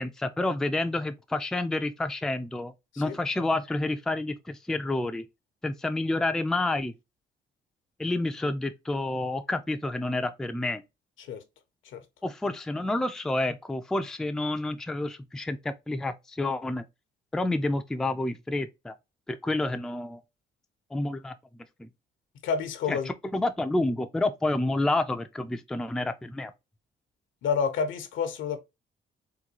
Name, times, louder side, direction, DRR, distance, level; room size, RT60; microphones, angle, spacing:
voice 1, 0.0-5.3 5.6-6.9 8.0-10.8 12.2-16.8 17.3-19.0 19.3-20.2 20.9-21.3 21.8-21.9 22.9-23.0 23.3-26.5, left 2 dB, 5° left, 0.3 m, -29 dB
voice 2, 22.4-23.1 27.4-28.6, left 6 dB, 80° left, 0.7 m, -29 dB
3.8 x 2.3 x 2.8 m
cardioid pair, 90°, 20 cm